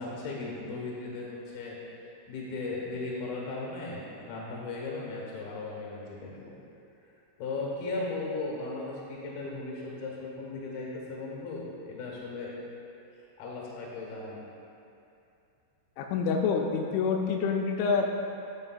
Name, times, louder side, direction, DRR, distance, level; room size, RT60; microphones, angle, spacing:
voice 1, 0.0-1.8 2.3-6.5 7.4-12.5 13.2-14.5, left 3 dB, 65° left, -3 dB, 2.7 m, -37 dB
voice 2, 16.0-18.1, left 5 dB, 90° left, 1 dB, 2.9 m, -27 dB
9.7 x 6.7 x 2.3 m, 2.7 s
omnidirectional pair, 5.2 m